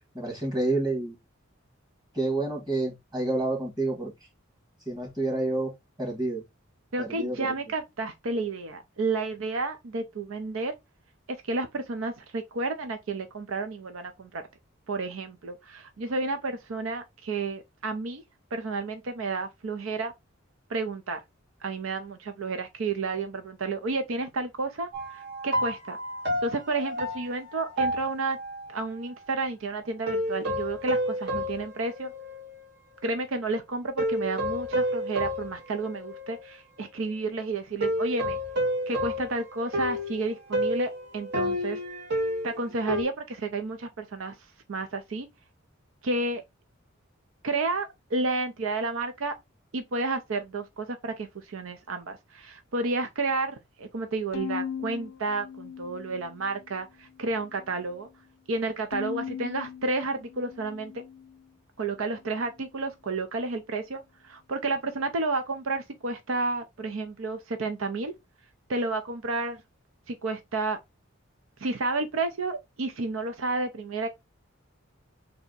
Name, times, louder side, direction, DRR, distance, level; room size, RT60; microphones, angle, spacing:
voice 1, 0.1-1.2 2.1-4.1 4.9-5.7 6.0-6.4 7.0-7.5, right 2 dB, 20° right, 1.7 m, -29 dB
voice 2, 6.9-10.7 11.3-14.4 14.9-18.2 18.5-20.1 20.7-21.2 21.6-26.0 26.4-28.4 28.7-32.1 33.0-38.4 38.9-41.8 42.4-44.4 44.7-45.3 46.0-46.4 47.4-49.3 49.7-58.1 58.5-61.0 61.8-68.1 68.7-69.6 70.1-70.8 71.6-74.1, right 3 dB, 75° right, 0.5 m, -31 dB
sound 1, 24.9-28.7 30.1-32.6 33.1-33.2 34.0-36.5 37.8-43.0, equal, 55° right, 1.2 m, -30 dB
Bowed string instrument, 54.3-56.7 57.2-57.9 58.9-61.4, left 7 dB, 75° left, 0.4 m, -39 dB
3.4 x 2.7 x 3.9 m
head